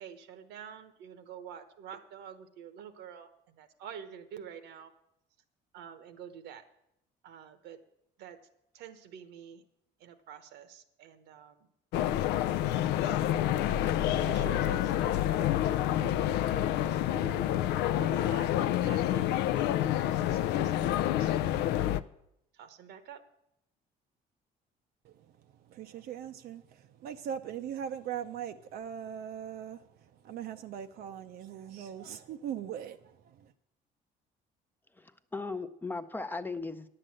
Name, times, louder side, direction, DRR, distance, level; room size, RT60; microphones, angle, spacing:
voice 1, 0.0-4.9 5.7-6.6 7.2-7.8 8.2-8.4 8.7-9.6 10.0-11.7 13.0-13.2 14.1-17.4 17.7-21.5 22.5-23.2, right 8 dB, 85° right, 10 dB, 1.0 m, -48 dB
sound 1, 11.9-22.0, left 12 dB, 85° left, 0.4 m, -28 dB
voice 2, 25.0-33.5, right 9 dB, 65° right, 7 dB, 0.5 m, -40 dB
voice 3, 35.0-36.9, left 3 dB, 10° left, 11 dB, 0.5 m, -37 dB
10.0 x 7.8 x 7.6 m, 0.80 s
cardioid pair, 110°, 17 cm